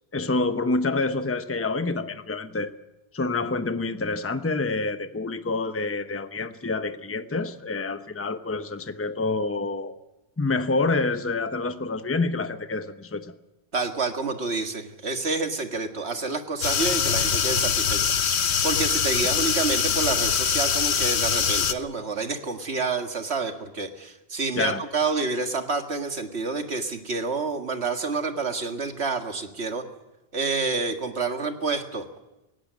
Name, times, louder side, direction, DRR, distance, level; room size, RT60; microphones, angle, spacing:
voice 1, 0.1-2.7 3.1-9.9 10.4-13.3 19.3-19.5 24.6-24.8, left 3 dB, 15° left, 10 dB, 0.8 m, -27 dB
voice 2, 13.7-29.8 30.3-32.1, right 4 dB, 85° right, 5 dB, 2.1 m, -28 dB
sound 1, 16.6-21.7, left 7 dB, 90° left, 1.2 m, -23 dB
19.0 x 16.5 x 9.4 m, 1.0 s
omnidirectional pair, 1.1 m